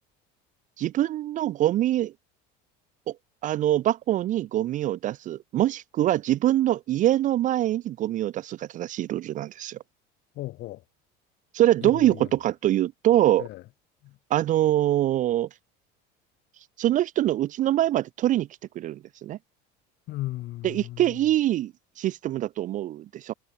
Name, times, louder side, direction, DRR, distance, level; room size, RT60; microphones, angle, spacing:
voice 1, 0.8-2.1 3.1-3.2 3.4-9.8 11.5-13.5 14.3-15.5 16.8-18.5 18.8-19.4 20.6-23.3, right 13 dB, 40° right, 0.6 m, -24 dB
voice 2, 10.4-10.8 11.8-12.3 13.4-13.6 14.0-14.2 20.1-21.2, left 17 dB, 55° left, 7.3 m, -36 dB
cardioid pair, 145°, 21 cm